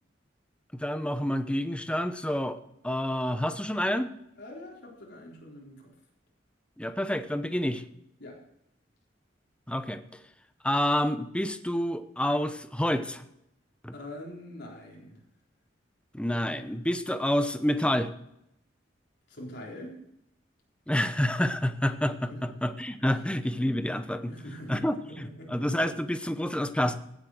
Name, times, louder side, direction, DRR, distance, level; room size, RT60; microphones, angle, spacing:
voice 1, 0.7-2.6 2.8-4.1 6.8-7.8 9.7-10.0 10.6-13.2 13.8-13.9 16.1-18.1 20.9-24.3 24.7-27.0, left 1 dB, 5° left, 11 dB, 0.8 m, -28 dB
voice 2, 4.4-5.9 8.2-8.4 13.9-15.2 19.3-19.9 22.3-22.4 23.1-23.2 24.3-25.5, left 1 dB, 65° left, -2 dB, 3.9 m, -44 dB
16.0 x 8.3 x 6.4 m, 0.79 s
head